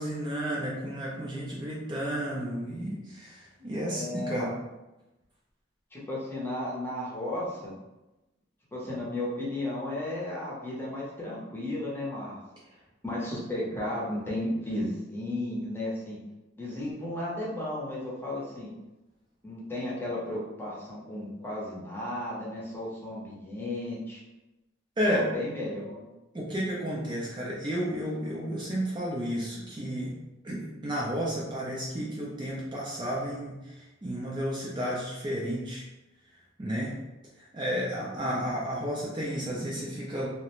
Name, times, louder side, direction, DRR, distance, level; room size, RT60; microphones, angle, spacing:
voice 1, 0.0-4.5 25.0-25.3 26.3-30.1 30.4-35.9 36.6-36.9 37.4-40.3, equal, 25° right, -4 dB, 0.4 m, -32 dB
voice 2, 3.6-4.5 5.9-7.7 8.7-12.4 13.0-16.2 16.6-18.7 19.4-24.2 25.0-26.0 38.1-38.4, left 1 dB, 10° left, -5 dB, 0.7 m, -34 dB
2.4 x 2.0 x 2.9 m, 1.0 s
head